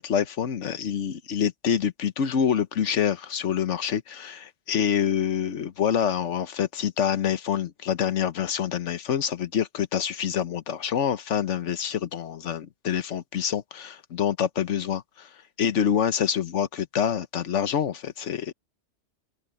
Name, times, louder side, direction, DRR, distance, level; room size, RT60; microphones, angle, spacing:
voice 1, 0.0-15.3 15.6-18.5, left 8 dB, 85° left, 1.3 m, -26 dB
omnidirectional pair, 1.2 m